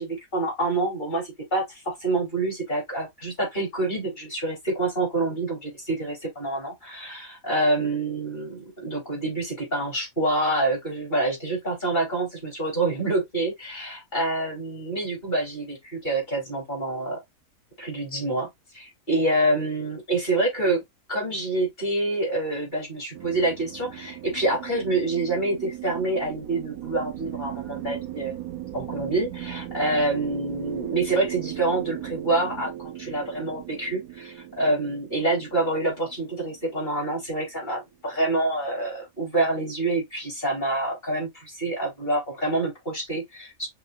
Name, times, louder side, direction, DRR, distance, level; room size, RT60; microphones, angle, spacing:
voice 1, 0.0-17.2 17.8-18.5 18.7-20.8 21.1-28.4 28.7-43.7, right 2 dB, 30° left, 3.2 m, -27 dB
sound 1, 23.1-37.7, right 13 dB, 75° right, 1.0 m, -38 dB
5.8 x 3.3 x 2.4 m
omnidirectional pair, 1.5 m